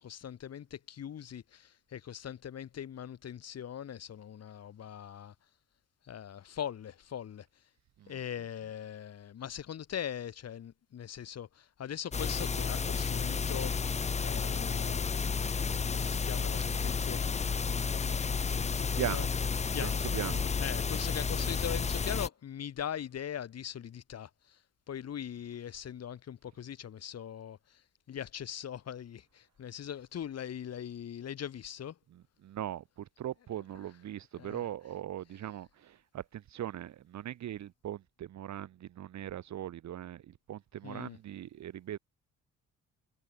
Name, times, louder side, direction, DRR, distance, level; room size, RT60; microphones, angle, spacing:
voice 1, 0.0-5.3 6.0-7.5 8.1-13.7 14.2-18.2 18.5-19.3 19.7-20.0 20.6-24.6 24.9-27.8 28.1-32.0 34.4-34.7 40.8-41.2, left 9 dB, 55° left, 2.3 m, -41 dB
sound 1, 12.1-22.3, left 5 dB, 20° left, 0.6 m, -31 dB
voice 2, 19.0-19.3 19.8-20.4 32.4-42.0, right 11 dB, 65° right, 1.7 m, -40 dB
cardioid pair, 90°, 30 cm